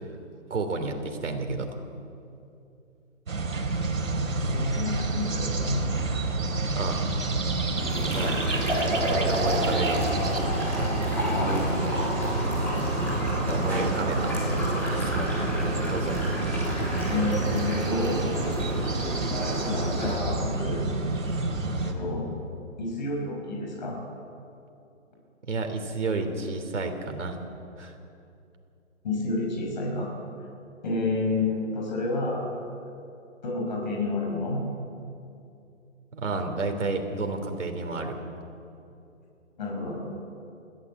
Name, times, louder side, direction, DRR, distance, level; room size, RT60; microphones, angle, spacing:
voice 1, 0.5-1.7 6.7-7.0 8.1-8.4 9.1-10.1 13.2-14.3 14.9-15.3 15.9-16.2 25.5-27.4 27.8-27.9 36.1-38.2, right 3 dB, 65° right, 5 dB, 3.5 m, -31 dB
sound 1, 3.3-21.9, right 2 dB, 80° right, 3.6 m, -29 dB
voice 2, 4.5-5.8 8.2-8.3 11.3-11.6 17.1-18.3 19.6-20.9 21.8-22.3 22.8-24.0 29.0-30.1 30.8-32.5 33.4-34.6 39.6-40.0, left 2 dB, 35° left, -1 dB, 5.7 m, -29 dB
sound 2, 7.8-20.1, equal, 5° left, 3.8 m, -30 dB
21.0 x 15.5 x 8.3 m, 2.7 s
hypercardioid pair, 175°, 39 cm